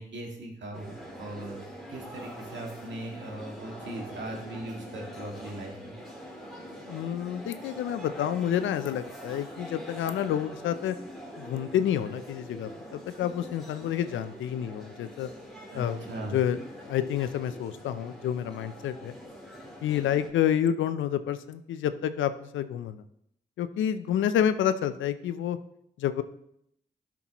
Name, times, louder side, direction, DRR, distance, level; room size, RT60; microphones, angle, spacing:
voice 1, 0.0-1.6 1.9-5.9 15.7-16.4, right 1 dB, 70° right, 0 dB, 2.0 m, -39 dB
sound 1, 0.7-20.3, equal, ahead, 2.8 m, -44 dB
voice 2, 6.8-11.0 11.4-15.3 15.7-16.1 16.3-19.1 19.8-23.0 23.6-25.6 26.0-26.2, left 10 dB, 90° left, 12 dB, 0.5 m, -29 dB
12.0 x 6.0 x 3.0 m, 0.76 s
supercardioid pair, 50°, 19 cm